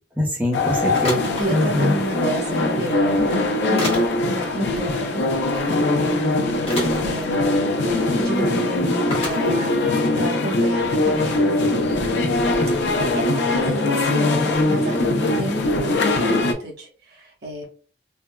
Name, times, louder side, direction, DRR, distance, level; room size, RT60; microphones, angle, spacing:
voice 1, 0.2-1.2 1.5-1.9, left 1 dB, 10° right, -3 dB, 0.7 m, -22 dB
sound 1, 0.5-16.5, left 2 dB, 70° left, 0.5 m, -21 dB
sound 2, 0.9-1.5 2.8-3.0 3.8-4.1 5.8-5.9 6.7-7.0 7.9-8.1 8.3-8.4 9.1-9.4 10.1-10.2 10.6-11.2 11.9-12.0 12.6-12.8 14.8-15.0, left 1 dB, 35° left, 1.0 m, -28 dB
voice 2, 1.4-6.8 7.1-17.6, right 1 dB, 65° right, -1 dB, 1.1 m, -30 dB
3.3 x 2.1 x 2.2 m, 0.39 s
head